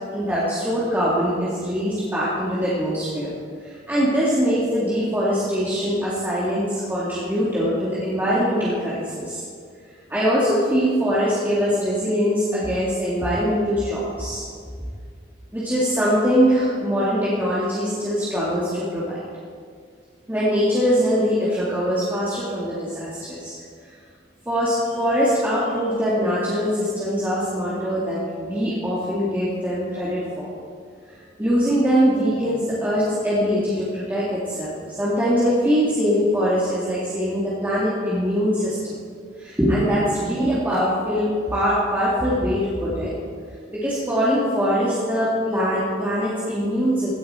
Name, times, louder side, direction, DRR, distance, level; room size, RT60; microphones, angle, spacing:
voice 1, 0.1-3.3 3.6-9.4 10.1-14.4 15.5-19.3 20.3-23.6 24.5-30.5 31.1-39.0 39.4-43.1 43.7-47.1, equal, 10° right, -9 dB, 2.1 m, -22 dB
16.5 x 10.5 x 4.4 m, 2.1 s
head